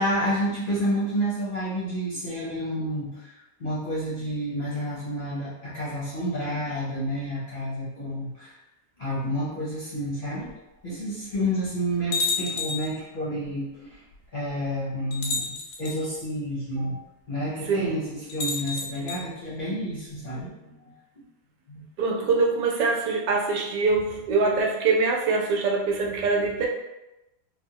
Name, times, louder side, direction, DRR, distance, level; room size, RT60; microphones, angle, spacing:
voice 1, 0.0-3.3 3.6-8.6 9.0-10.5 10.8-14.0 14.3-15.5 15.8-17.0 17.3-20.9 21.7-21.8, equal, 45° left, -9 dB, 0.7 m, -29 dB
sound 1, 10.5-10.6 11.3-11.4 12.1-13.0 14.1-14.2 15.1-16.0 18.3-19.2, left 4 dB, 85° left, 1.2 m, -30 dB
voice 2, 22.0-26.7, right 4 dB, 80° right, -1 dB, 1.2 m, -24 dB
3.3 x 2.1 x 2.8 m, 0.96 s
omnidirectional pair, 1.8 m